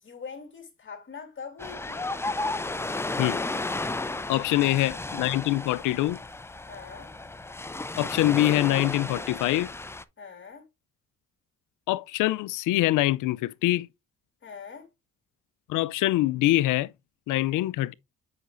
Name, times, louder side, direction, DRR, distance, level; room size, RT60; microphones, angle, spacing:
voice 1, 0.0-2.2 4.4-4.8 6.7-7.1 10.2-10.7 14.4-14.9, left 5 dB, 40° left, 2.7 m, -43 dB
Ocean, 1.6-10.0, left 2 dB, 10° left, 0.4 m, -33 dB
voice 2, 4.3-6.2 8.0-9.7 11.9-13.9 15.7-16.9 17.3-17.9, left 16 dB, 85° left, 0.5 m, -24 dB
8.1 x 5.7 x 2.5 m
cardioid pair, 90°, 30 cm